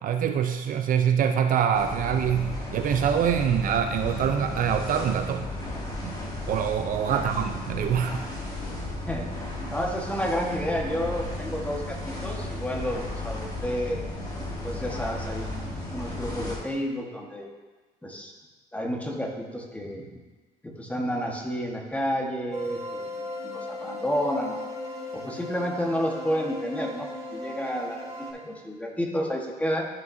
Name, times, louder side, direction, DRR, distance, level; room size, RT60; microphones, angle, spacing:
voice 1, 0.0-5.5 6.0-6.1 6.5-8.2, right 8 dB, 55° right, 6 dB, 0.5 m, -25 dB
sound 1, 1.7-16.6, left 1 dB, 25° left, 2.2 m, -34 dB
voice 2, 9.7-14.0 14.6-17.5 18.0-18.3 18.7-20.0 20.6-24.6 25.1-29.8, equal, 10° left, 0 dB, 1.3 m, -30 dB
sound 2, 22.5-28.3, left 1 dB, 20° right, 2.5 m, -37 dB
12.5 x 5.9 x 2.7 m, 1.3 s
cardioid pair, 110°, 17 cm